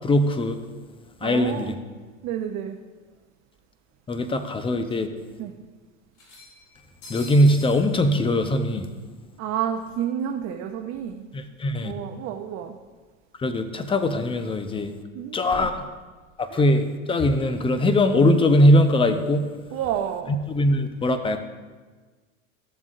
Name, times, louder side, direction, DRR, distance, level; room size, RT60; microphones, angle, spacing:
voice 1, 0.0-0.6 1.2-1.7 4.1-5.1 7.1-8.9 11.3-11.9 13.4-14.9 15.3-15.7 16.4-19.4 20.5-21.4, left 1 dB, 15° left, 8 dB, 0.7 m, -21 dB
voice 2, 1.2-1.8 2.2-2.8 5.4-5.5 9.4-11.2 11.8-12.8 15.1-15.7 16.5-16.8 19.7-20.3, right 9 dB, 45° right, 4 dB, 0.7 m, -30 dB
sound 1, 2.7-2.8 3.1-3.2 4.3-4.4 4.7-4.8 6.1-7.9, left 2 dB, 70° left, 2.7 m, -44 dB
14.0 x 7.2 x 2.5 m, 1.4 s
hypercardioid pair, 90°, 38 cm